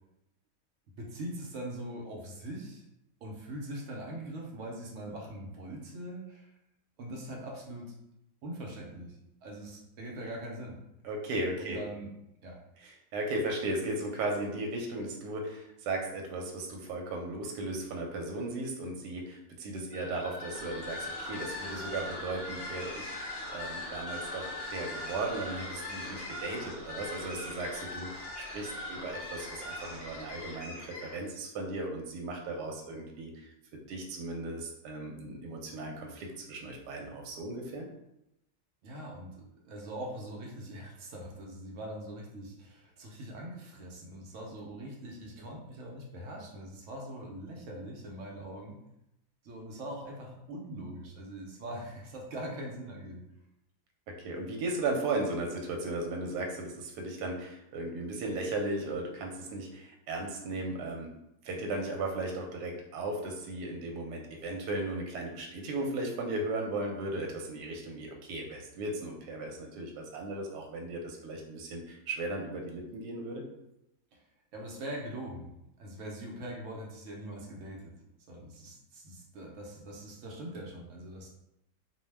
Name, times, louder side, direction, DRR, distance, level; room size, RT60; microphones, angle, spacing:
voice 1, 1.0-2.8 3.2-6.6 7.0-8.0 8.4-10.8 11.6-12.1 12.4-12.6 38.8-48.8 49.4-53.2 74.1-75.5 75.8-77.9 78.3-81.3, right 1 dB, 65° right, -1 dB, 0.8 m, -42 dB
voice 2, 11.0-11.8 13.1-33.5 33.9-37.9 54.2-61.1 61.4-73.4, right 2 dB, 85° right, 1 dB, 1.1 m, -36 dB
sound 1, 19.9-31.3, left 1 dB, 55° left, 0.7 m, -40 dB
2.6 x 2.1 x 3.2 m, 0.84 s
omnidirectional pair, 1.7 m